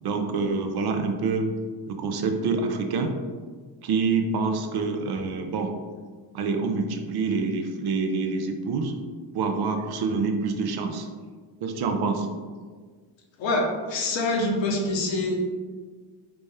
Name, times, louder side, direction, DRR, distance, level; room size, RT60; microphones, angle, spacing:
voice 1, 0.0-1.5 1.9-3.1 3.8-5.7 6.3-8.9 9.3-11.1 11.6-12.3, right 4 dB, 55° right, 5 dB, 0.6 m, -26 dB
voice 2, 13.4-15.4, left 2 dB, 65° left, 0 dB, 0.9 m, -25 dB
4.2 x 2.1 x 3.3 m, 1.5 s
supercardioid pair, 65°, 48 cm